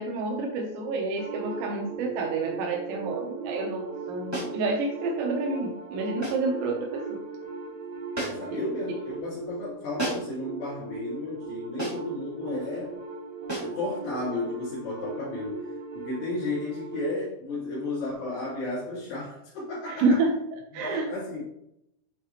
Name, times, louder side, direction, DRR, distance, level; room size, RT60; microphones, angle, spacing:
voice 1, 0.0-7.2 19.9-20.4 20.7-21.1, right 3 dB, 85° right, 0 dB, 3.1 m, -29 dB
sound 1, 1.2-17.2, right 4 dB, 65° right, 4.5 m, -38 dB
sound 2, 4.3-4.6 6.2-6.5 8.1-8.6 10.0-10.4 11.8-12.1 13.5-13.8, right 2 dB, 20° right, 0.7 m, -33 dB
voice 2, 8.2-13.0 13.6-20.2 20.7-21.4, left 2 dB, 75° left, -12 dB, 4.9 m, -33 dB
10.5 x 4.1 x 3.0 m, 0.80 s
omnidirectional pair, 5.0 m